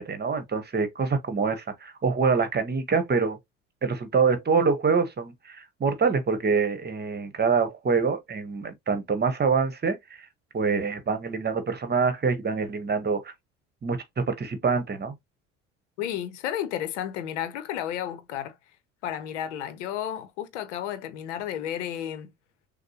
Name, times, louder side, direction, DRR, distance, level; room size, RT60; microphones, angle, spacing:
voice 1, 0.0-3.4 3.8-10.0 10.5-13.3 13.8-15.1, right 5 dB, 25° right, 1.2 m, -25 dB
voice 2, 16.0-18.5 19.0-22.3, left 10 dB, 70° left, 0.8 m, -32 dB
6.4 x 2.2 x 2.9 m
figure-of-eight pair, 60°, 38 cm